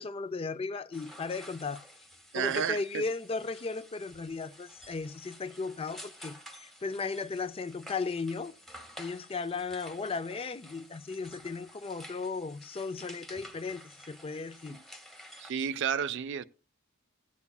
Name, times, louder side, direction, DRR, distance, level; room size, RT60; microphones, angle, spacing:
voice 1, 0.0-1.8 2.3-8.5 9.0-14.8, left 4 dB, 25° left, 0.4 m, -36 dB
sound 1, 0.9-15.5, equal, ahead, 0.9 m, -51 dB
voice 2, 2.3-3.0 14.7-14.8 15.4-16.4, right 8 dB, 55° right, 0.4 m, -31 dB
17.0 x 8.3 x 2.3 m
head